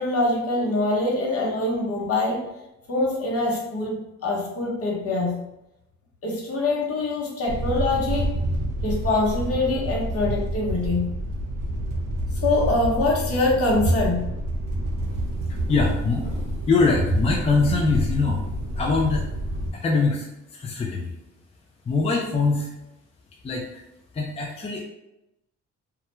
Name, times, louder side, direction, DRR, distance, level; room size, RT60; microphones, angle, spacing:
voice 1, 0.0-2.4 2.9-5.3 6.2-8.4 8.8-11.1 12.4-14.2, left 2 dB, 50° left, -3 dB, 0.9 m, -24 dB
sound 1, 7.5-19.7, right 1 dB, 60° right, 0.6 m, -28 dB
voice 2, 15.5-18.4 18.8-19.3 19.7-21.1 21.9-22.7 23.4-23.7 24.1-24.8, left 3 dB, 20° left, -1 dB, 0.4 m, -23 dB
2.4 x 2.1 x 2.9 m, 0.89 s
cardioid pair, 90°, 30 cm